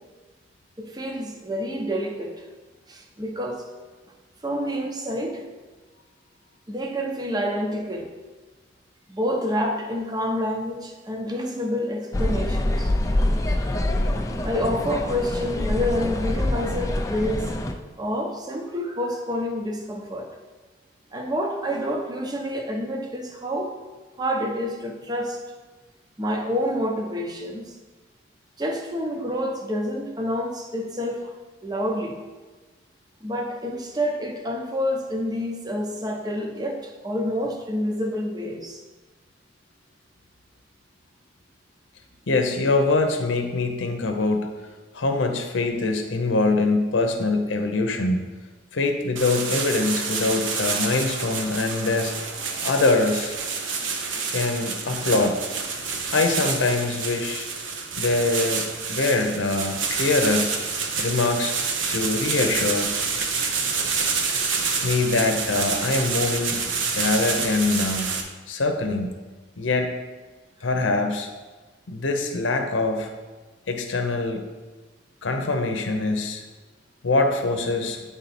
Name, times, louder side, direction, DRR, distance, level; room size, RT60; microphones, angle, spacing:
voice 1, 0.8-2.4 2.9-3.6 4.4-5.5 6.7-8.1 9.2-12.9 14.4-17.5 18.0-20.3 21.1-23.7 24.2-25.4 26.2-27.8 28.6-31.3 31.6-32.2 33.2-38.8, equal, 20° right, 3 dB, 0.7 m, -28 dB
sound 1, 12.1-17.7, left 1 dB, 15° left, 0.4 m, -25 dB
voice 2, 42.3-44.5 44.9-48.2 48.7-52.1 52.6-53.3 54.3-55.4 56.1-57.5 58.0-60.6 61.0-61.5 61.9-62.9 64.8-66.6 66.9-68.1 68.5-69.2 69.6-69.9 70.6-71.3 71.9-73.1 73.7-74.4 75.2-76.4 77.0-78.0, left 3 dB, 90° left, 5 dB, 0.7 m, -23 dB
sound 2, 49.2-68.2, right 5 dB, 90° right, 0.8 m, -28 dB
9.5 x 3.7 x 4.2 m, 1.3 s
head